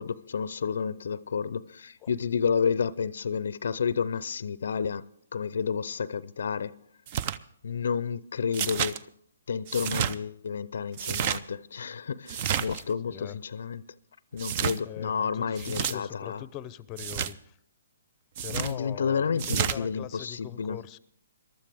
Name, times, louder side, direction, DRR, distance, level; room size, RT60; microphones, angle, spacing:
voice 1, 0.0-5.0 5.3-6.8 7.6-9.0 9.5-13.8 14.3-16.4 18.5-20.8, left 6 dB, 65° left, 0.5 m, -30 dB
sound 1, 7.1-7.4 8.5-9.0 9.7-10.1 10.9-11.4 12.3-12.8 14.4-14.8 15.6-15.9 17.0-17.3 18.4-18.7 19.4-19.8, right 9 dB, 40° right, 0.6 m, -30 dB
voice 2, 13.1-13.4 14.8-17.5 18.4-21.0, left 13 dB, 25° left, 0.6 m, -41 dB
22.0 x 13.0 x 3.5 m
hypercardioid pair, 135°, 0 cm